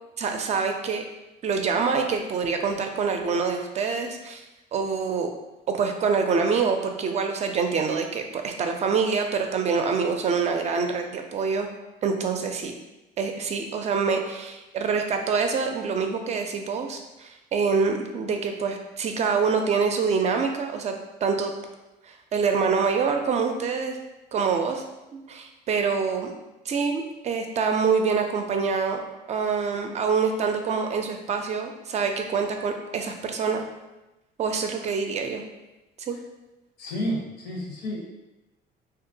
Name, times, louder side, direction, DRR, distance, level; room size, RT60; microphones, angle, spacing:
voice 1, 0.2-1.0 1.4-4.4 4.7-5.3 5.7-11.7 12.0-12.7 13.2-20.9 21.2-21.5 22.1-24.0 24.3-24.8 25.1-26.3 26.7-29.0 29.3-33.6 34.4-35.4 36.0-36.2, right 5 dB, 40° right, 4 dB, 0.4 m, -25 dB
voice 2, 36.8-38.0, equal, 90° left, -1 dB, 0.8 m, -30 dB
2.8 x 2.4 x 2.6 m, 1.0 s
cardioid pair, 110°, 17 cm